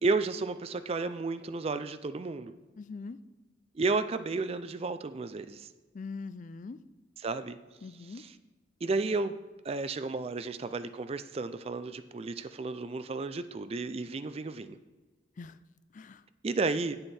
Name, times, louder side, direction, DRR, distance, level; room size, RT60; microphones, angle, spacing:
voice 1, 0.0-2.5 3.8-5.7 7.2-7.6 8.2-8.3 8.8-9.4 9.6-14.8 16.4-17.0, right 3 dB, 30° right, 12 dB, 0.4 m, -32 dB
voice 2, 2.8-3.2 5.9-6.8 7.8-8.2 15.4-15.6 15.9-16.2, left 4 dB, 40° left, 14 dB, 0.4 m, -42 dB
9.8 x 7.8 x 4.2 m, 1.3 s
head